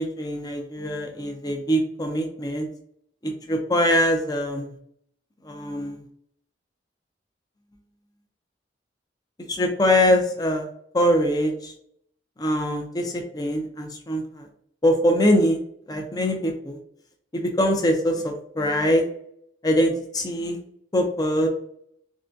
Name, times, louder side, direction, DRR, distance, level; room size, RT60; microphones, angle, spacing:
voice 1, 0.0-2.7 3.2-4.7 5.5-6.0 9.5-10.7 10.9-11.7 12.4-14.4 14.8-15.6 15.9-16.8 17.3-19.0 19.6-20.6 20.9-21.5, equal, 20° left, 3 dB, 0.5 m, -23 dB
3.7 x 2.2 x 2.5 m, 0.67 s
head